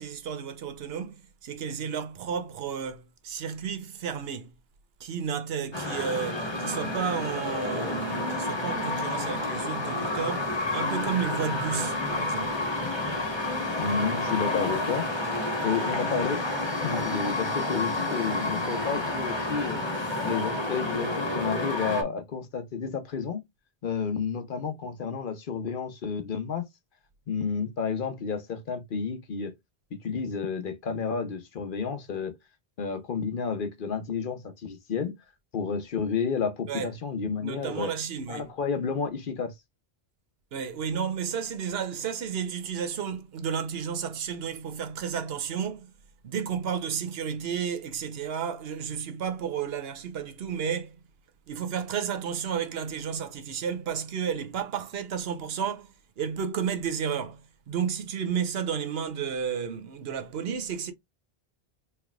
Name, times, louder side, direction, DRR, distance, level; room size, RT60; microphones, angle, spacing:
voice 1, 0.0-4.5 5.0-12.6 36.7-36.9 37.4-38.5 40.5-45.9 46.2-51.0 51.5-57.4 57.7-60.9, right 7 dB, 75° right, 0.9 m, -32 dB
sound 1, 5.7-22.0, left 2 dB, 25° left, 1.1 m, -30 dB
voice 2, 13.8-15.1 15.6-16.4 16.8-19.8 20.2-23.4 23.8-26.6 27.3-29.5 29.9-32.3 32.8-35.1 35.5-37.9 38.3-39.5, left 6 dB, 60° left, 0.9 m, -31 dB
4.3 x 3.2 x 2.3 m
omnidirectional pair, 1.0 m